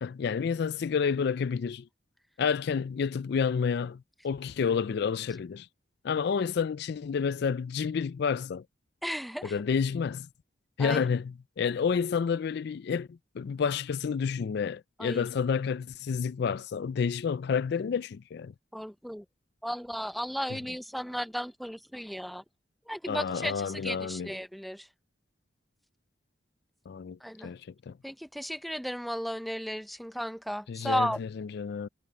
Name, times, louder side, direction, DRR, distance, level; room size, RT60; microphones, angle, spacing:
voice 1, 0.0-1.9 2.4-5.7 6.0-8.6 9.4-10.3 10.8-18.5 20.5-20.6 23.1-24.3 26.9-27.2 27.4-27.9 30.7-31.9, left 6 dB, 60° left, 0.4 m, -30 dB
voice 2, 9.0-9.5 10.8-11.1 15.0-15.3 18.7-19.2 19.6-22.4 22.9-24.9 27.2-27.5 28.0-31.2, equal, ahead, 0.6 m, -34 dB
head